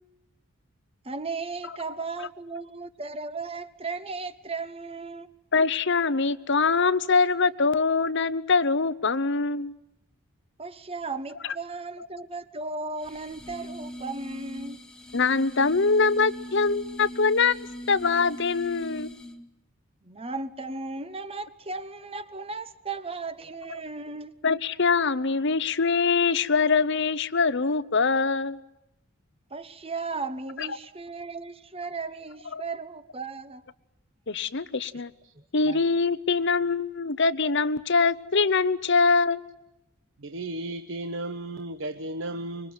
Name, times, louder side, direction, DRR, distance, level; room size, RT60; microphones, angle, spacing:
voice 1, 1.0-5.3 10.6-14.8 20.0-24.3 29.5-33.6 35.3-35.8, right 3 dB, 25° right, 1.1 m, -36 dB
voice 2, 5.5-9.7 15.1-19.1 24.4-28.6 30.6-30.7 32.5-32.6 34.3-35.1 35.5-39.4, left 4 dB, 55° left, 0.9 m, -23 dB
sound 1, 13.0-19.5, equal, 5° left, 1.5 m, -40 dB
voice 3, 40.2-42.7, right 1 dB, 60° right, 1.0 m, -34 dB
25.5 x 23.5 x 9.6 m
head